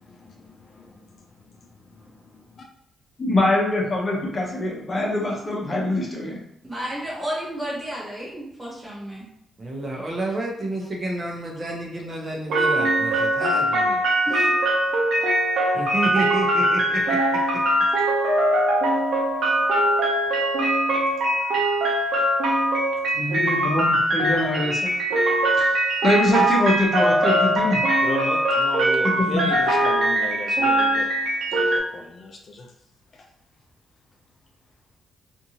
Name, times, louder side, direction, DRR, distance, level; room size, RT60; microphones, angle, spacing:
voice 1, 0.0-2.7 10.0-10.1 28.0-31.1 31.5-32.7 33.1-33.3, left 3 dB, 50° left, 1 dB, 0.4 m, -36 dB
voice 2, 3.2-6.4 23.1-24.9 25.6-25.7 26.0-27.8 29.2-29.4, left 1 dB, 30° left, -2 dB, 0.8 m, -23 dB
voice 3, 6.6-9.3 14.3-14.5, right 1 dB, 15° right, -5 dB, 1.2 m, -32 dB
voice 4, 9.6-14.0 15.7-17.2, right 1 dB, 35° right, -2 dB, 0.7 m, -30 dB
sound 1, 12.5-31.8, right 1 dB, 75° right, 0.7 m, -21 dB
2.6 x 2.6 x 2.8 m, 0.77 s
cardioid pair, 100°, 0 cm